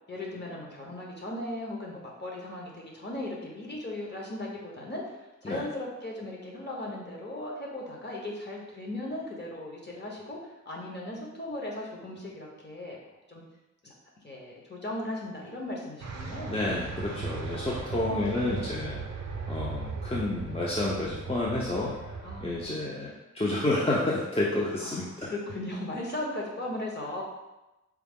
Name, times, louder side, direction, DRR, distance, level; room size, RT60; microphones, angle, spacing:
voice 1, 0.1-5.0 5.4-10.4 10.6-13.0 13.3-13.4 13.8-13.9 14.2-16.5 17.7-18.5 22.2-22.9 24.8-27.2, left 1 dB, 35° left, -3 dB, 1.0 m, -37 dB
sound 1, 16.0-22.7, right 4 dB, 60° right, 0.6 m, -37 dB
voice 2, 16.5-19.0 19.5-21.9 22.4-25.3, left 2 dB, 20° left, -6 dB, 0.5 m, -30 dB
4.6 x 2.0 x 3.6 m, 1.0 s
wide cardioid pair, 70°, 30 cm